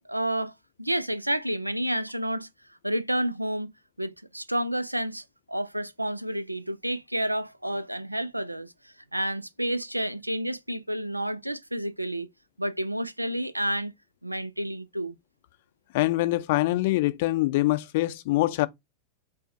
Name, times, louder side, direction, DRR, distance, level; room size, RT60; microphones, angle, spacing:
voice 1, 0.1-0.5 0.8-2.5 2.8-3.7 4.0-8.7 9.1-12.3 12.6-13.9 14.2-15.2, right 1 dB, 85° right, 0.3 m, -30 dB
voice 2, 15.9-18.7, left 18 dB, 50° left, 0.5 m, -24 dB
5.5 x 2.1 x 2.7 m
figure-of-eight pair, 90°, 0 cm